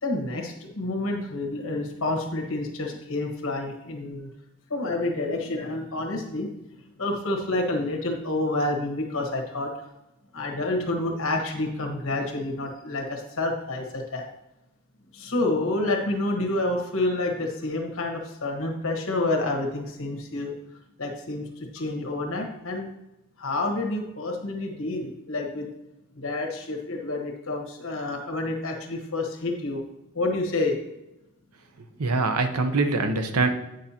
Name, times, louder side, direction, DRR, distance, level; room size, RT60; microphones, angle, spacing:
voice 1, 0.0-4.3 4.7-6.5 7.0-9.7 10.3-14.3 15.1-20.5 21.0-22.9 23.4-25.7 26.1-29.8 30.1-30.8, left 2 dB, 60° left, 2 dB, 1.3 m, -28 dB
voice 2, 31.8-33.5, right 3 dB, 85° right, 7 dB, 0.7 m, -24 dB
9.2 x 6.5 x 2.8 m, 0.93 s
head